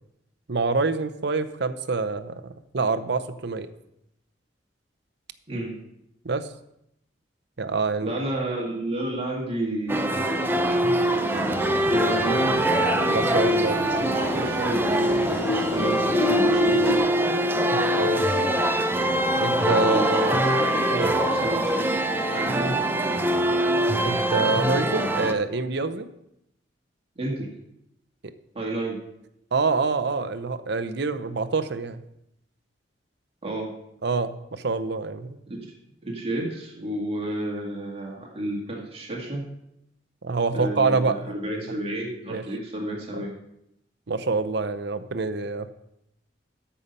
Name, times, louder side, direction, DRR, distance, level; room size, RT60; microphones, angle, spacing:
voice 1, 0.5-3.7 6.2-6.5 7.6-8.1 13.1-13.8 17.7-18.3 19.4-20.2 20.9-21.1 24.0-26.1 29.5-32.0 34.0-35.4 40.2-41.2 42.3-42.4 44.1-45.7, right 4 dB, 65° right, 11 dB, 0.7 m, -26 dB
voice 2, 5.5-5.8 8.0-10.4 11.0-12.6 13.9-17.0 19.8-22.1 22.3-22.8 27.2-27.5 28.5-29.0 33.4-33.7 35.5-35.7 36.0-39.4 40.5-43.3, right 1 dB, 35° right, -2 dB, 2.1 m, -31 dB
sound 1, 9.9-25.3, right 1 dB, 10° right, 0.6 m, -23 dB
sound 2, 11.3-17.0, left 2 dB, 65° left, 2.2 m, -31 dB
13.5 x 5.7 x 5.4 m, 0.80 s
head